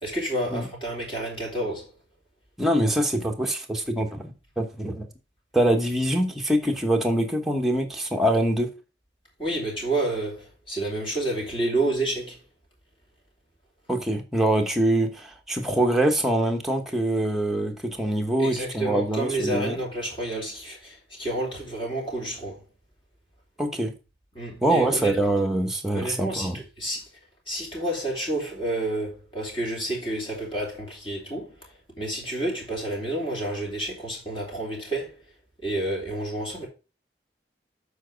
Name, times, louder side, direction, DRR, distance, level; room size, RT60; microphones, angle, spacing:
voice 1, 0.0-1.9 9.4-12.4 18.4-22.6 24.3-25.2 25.9-27.1 27.5-31.6 32.0-35.2 35.6-36.7, right 1 dB, 30° left, 3.2 m, -29 dB
voice 2, 2.6-5.1 5.5-8.7 13.9-19.8 23.6-23.9 24.6-26.6, right 1 dB, ahead, 1.0 m, -24 dB
7.3 x 4.8 x 5.1 m
head